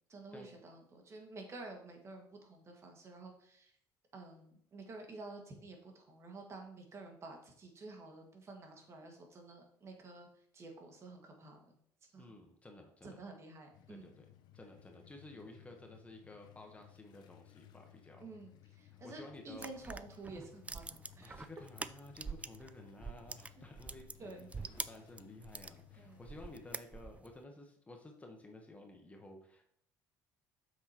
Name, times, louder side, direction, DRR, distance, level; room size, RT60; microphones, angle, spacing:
voice 1, 0.1-3.7 4.1-10.3 10.5-11.8 12.1-12.3 13.0-14.1 18.2-21.4 24.2-24.5 26.0-26.2, right 3 dB, 35° right, 2 dB, 1.8 m, -50 dB
voice 2, 12.2-13.2 13.9-14.3 14.5-18.3 19.0-19.7 21.2-29.6, left 2 dB, 15° left, 3 dB, 1.2 m, -53 dB
sound 1, 13.7-26.8, left 13 dB, 65° left, 0.7 m, -61 dB
sound 2, 19.5-22.7 23.0-25.8 26.2-27.3, right 4 dB, 15° right, 0.3 m, -45 dB
7.5 x 6.2 x 3.0 m, 0.66 s
cardioid pair, 100°, 8 cm